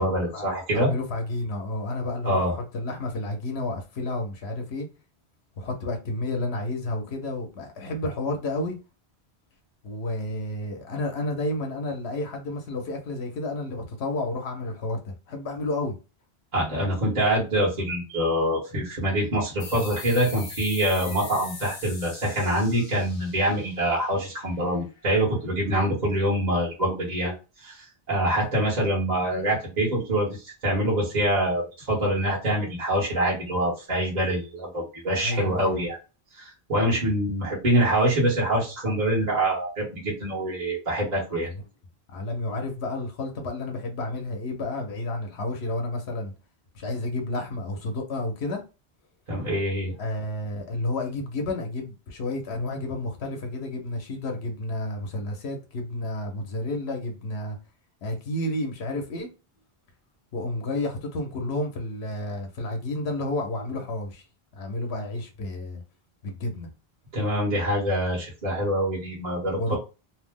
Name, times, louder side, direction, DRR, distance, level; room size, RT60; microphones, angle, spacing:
voice 1, 0.0-0.9 2.2-2.5 16.5-27.3 27.6-36.0 36.3-41.5 49.3-49.9 67.1-69.8, right 1 dB, 45° right, 1.2 m, -25 dB
voice 2, 0.7-4.9 5.6-8.8 9.8-16.0 25.6-25.8 35.2-35.8 41.4-41.5 42.1-46.3 46.7-48.6 50.0-57.6 58.0-59.3 60.3-64.2 64.6-65.8 66.2-66.7 69.5-69.8, left 2 dB, 85° left, 1.0 m, -31 dB
sound 1, 19.6-24.8, left 3 dB, 55° left, 1.1 m, -41 dB
2.8 x 2.0 x 3.4 m
omnidirectional pair, 1.1 m